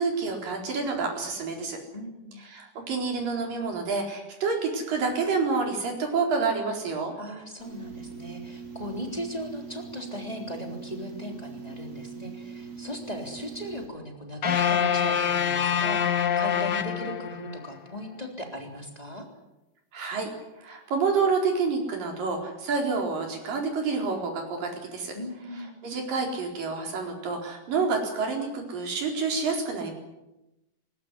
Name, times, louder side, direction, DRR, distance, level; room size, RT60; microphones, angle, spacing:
voice 1, 0.0-1.8 2.5-7.1 19.9-20.3 20.6-25.1 25.8-29.9, right 4 dB, 80° right, 2 dB, 6.0 m, -28 dB
voice 2, 1.9-2.4 7.2-19.3 25.1-25.8, equal, 10° left, 2 dB, 3.3 m, -38 dB
sound 1, 7.6-13.9, right 5 dB, 40° right, 5.2 m, -41 dB
sound 2, 14.4-17.7, left 8 dB, 70° left, 1.0 m, -25 dB
20.5 x 19.0 x 9.8 m, 0.96 s
omnidirectional pair, 3.9 m